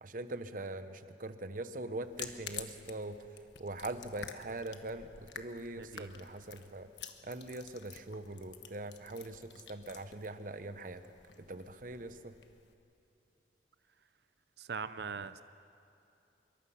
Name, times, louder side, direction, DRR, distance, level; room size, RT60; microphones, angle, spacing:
voice 1, 0.0-3.2 3.6-6.9 7.2-11.1 11.5-12.3, right 2 dB, 50° right, 10 dB, 1.0 m, -42 dB
sound 1, 2.0-12.7, left 8 dB, 85° left, 1.3 m, -50 dB
voice 2, 5.8-6.1 14.6-15.4, right 5 dB, 65° right, 13 dB, 0.5 m, -41 dB
25.5 x 23.0 x 5.7 m, 2.8 s
head